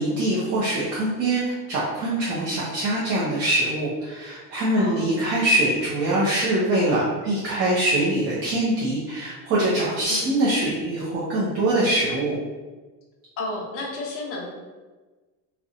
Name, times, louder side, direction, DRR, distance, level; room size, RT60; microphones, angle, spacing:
voice 1, 0.0-12.3, right 1 dB, 45° right, -7 dB, 0.5 m, -23 dB
voice 2, 4.8-5.2 10.1-10.4 13.4-14.5, left 2 dB, 40° left, -1 dB, 0.5 m, -32 dB
2.7 x 2.1 x 2.4 m, 1.3 s
cardioid pair, 175°, 35 cm